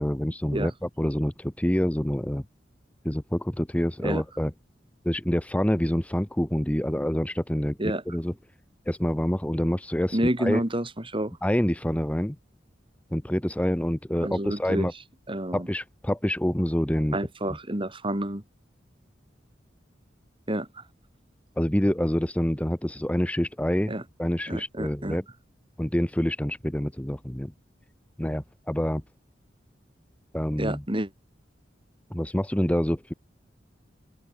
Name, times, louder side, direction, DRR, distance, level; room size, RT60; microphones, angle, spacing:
voice 1, 0.0-2.4 3.0-4.5 5.0-7.8 8.1-8.3 8.9-10.6 11.4-12.4 13.1-14.9 15.5-17.2 21.6-23.9 24.2-25.2 25.8-27.5 28.2-29.0 30.3-30.8 32.1-33.1, equal, 5° left, 0.9 m, -26 dB
voice 2, 10.1-11.4 14.2-14.9 15.3-15.7 17.1-18.4 20.5-20.8 23.9-24.0 24.5-25.2 30.6-31.1, right 1 dB, 30° right, 3.4 m, -29 dB
open air
head